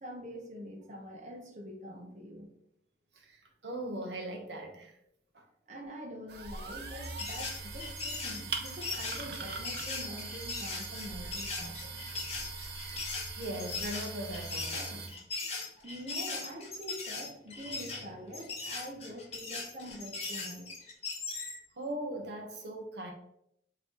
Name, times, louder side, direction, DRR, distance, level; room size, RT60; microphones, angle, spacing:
voice 1, 0.0-2.5 5.7-12.0 15.8-20.7, equal, 40° right, 0.9 m, -45 dB
voice 2, 3.1-4.9 5.3-5.4 13.3-15.2 21.8-23.1, right 1 dB, 80° right, 1.0 m, -39 dB
sound 1, 6.3-15.1, right 4 dB, 65° right, 0.6 m, -41 dB
sound 2, 7.0-21.6, left 4 dB, 35° left, 1.0 m, -39 dB
5.6 x 3.1 x 3.0 m
head